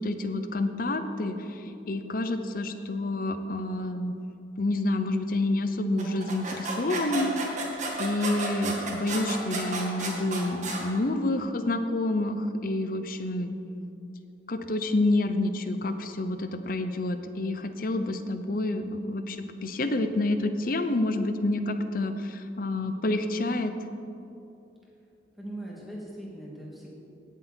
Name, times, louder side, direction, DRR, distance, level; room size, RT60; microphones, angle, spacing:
voice 1, 0.0-1.4 1.9-4.1 4.6-7.3 8.0-13.6 14.5-23.7, left 2 dB, 55° left, 9 dB, 0.7 m, -28 dB
sound 1, 6.0-10.8, right 2 dB, 45° right, 1.9 m, -32 dB
voice 2, 25.3-26.9, right 1 dB, ahead, -6 dB, 2.7 m, -40 dB
17.5 x 7.6 x 4.5 m, 2.8 s
head